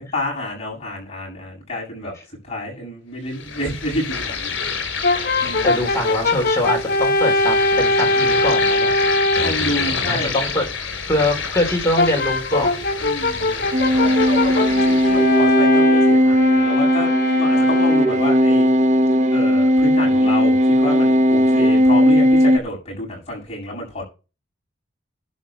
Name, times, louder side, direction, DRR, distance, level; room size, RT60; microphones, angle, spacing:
voice 1, 0.0-2.1 2.4-4.5 5.4-5.8 9.4-10.3 13.0-13.5 14.0-18.7 19.3-24.0, left 1 dB, 30° left, -4 dB, 7.7 m, -29 dB
sound 1, 3.3-15.6, left 5 dB, 65° left, 3.9 m, -28 dB
Brass instrument, 5.0-9.6 12.0-18.3, left 2 dB, 50° left, 1.4 m, -21 dB
voice 2, 5.6-8.9 9.9-12.8 13.4-13.7, left 1 dB, 15° left, 0 dB, 3.4 m, -23 dB
sound 2, 13.7-22.6, equal, 35° right, 0.7 m, -16 dB
11.5 x 5.5 x 7.2 m, 0.31 s
head